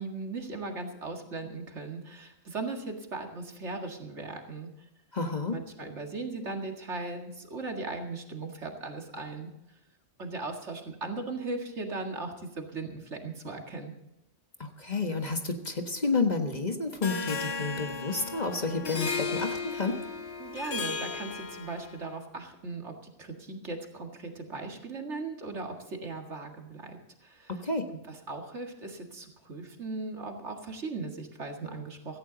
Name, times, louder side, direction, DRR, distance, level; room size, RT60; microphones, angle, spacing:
voice 1, 0.0-4.7 5.5-9.5 10.2-13.9 20.4-27.5 28.1-32.2, right 3 dB, 70° right, 3 dB, 2.3 m, -38 dB
voice 2, 5.1-5.6 14.6-20.0 27.5-27.9, left 3 dB, 35° left, 4 dB, 1.6 m, -30 dB
Harp, 17.0-22.0, left 4 dB, 60° left, 1.5 m, -35 dB
16.5 x 15.0 x 4.0 m, 0.86 s
omnidirectional pair, 1.2 m